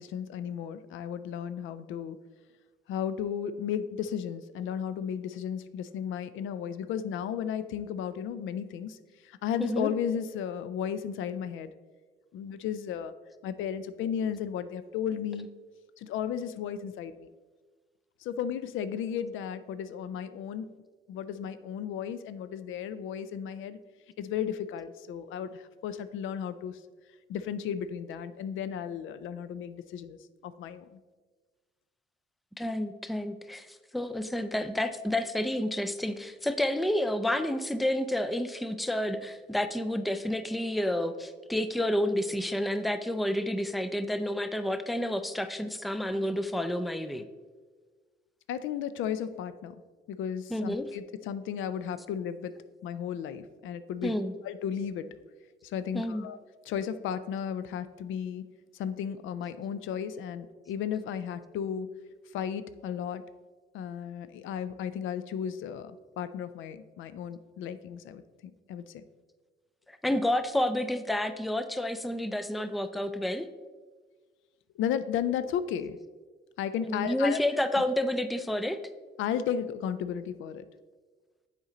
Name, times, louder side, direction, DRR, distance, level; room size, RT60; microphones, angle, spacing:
voice 1, 0.0-2.2 2.9-9.0 9.2-11.7 12.3-13.1 13.4-15.5 16.0-17.3 18.2-20.7 21.1-23.8 24.2-26.8 27.3-31.0 48.5-49.7 50.1-52.5 52.8-54.1 54.4-55.1 55.6-56.4 56.7-58.4 58.7-61.9 62.3-63.2 63.7-68.2 68.7-69.0 74.8-76.0 76.6-77.4 79.2-80.7, left 8 dB, 80° left, 13 dB, 0.4 m, -34 dB
voice 2, 9.6-10.0 32.6-47.2 50.5-50.9 54.0-54.4 55.9-56.3 70.0-73.5 76.8-78.8, left 1 dB, ahead, 10 dB, 0.3 m, -30 dB
7.2 x 4.4 x 3.8 m, 1.4 s
cardioid pair, 90°, 20 cm